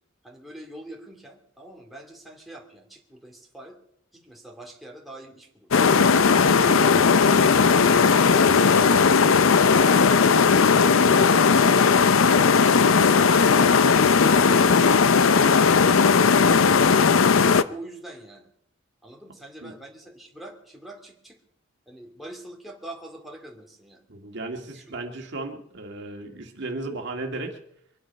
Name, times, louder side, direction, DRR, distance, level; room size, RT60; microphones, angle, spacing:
voice 1, 0.2-3.8 4.1-5.7 17.7-18.5 19.0-21.4 21.9-24.0 24.6-24.8, right 1 dB, ahead, -1 dB, 2.3 m, -45 dB
sound 1, 5.7-17.6, left 5 dB, 75° left, 0.6 m, -17 dB
voice 2, 6.5-7.0 19.6-19.7 24.1-27.6, right 2 dB, 60° right, 2 dB, 1.9 m, -34 dB
24.5 x 10.0 x 5.3 m, 0.70 s
head